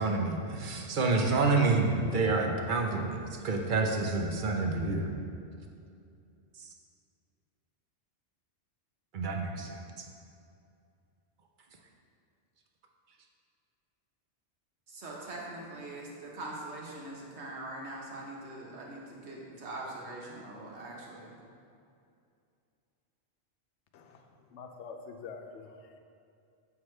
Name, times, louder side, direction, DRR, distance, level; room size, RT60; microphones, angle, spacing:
voice 1, 0.0-5.1 9.1-10.1, right 3 dB, 50° right, 2 dB, 0.7 m, -28 dB
voice 2, 14.9-21.4, right 2 dB, 70° right, -3 dB, 1.4 m, -42 dB
voice 3, 23.9-26.0, left 5 dB, 75° left, 5 dB, 0.9 m, -46 dB
7.5 x 5.8 x 3.2 m, 2.5 s
omnidirectional pair, 1.2 m